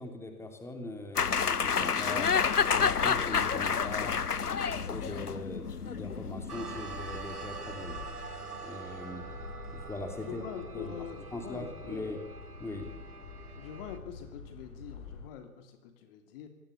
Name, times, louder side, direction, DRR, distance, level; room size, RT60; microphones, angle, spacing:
voice 1, 0.0-2.3 2.7-4.2 4.6-8.0 8.6-9.3 9.7-10.4 10.7-12.2 12.6-12.9, left 2 dB, 5° left, 4 dB, 3.2 m, -41 dB
sound 1, 1.2-7.0, left 6 dB, 85° left, 0.9 m, -29 dB
sound 2, 2.1-15.3, left 4 dB, 65° left, 6.3 m, -47 dB
sound 3, 6.5-14.0, right 5 dB, 80° right, 3.4 m, -45 dB
voice 2, 10.2-12.3 13.6-16.5, left 8 dB, 40° left, 7 dB, 3.0 m, -44 dB
25.0 x 18.0 x 8.6 m, 0.96 s
figure-of-eight pair, 115°, 45 cm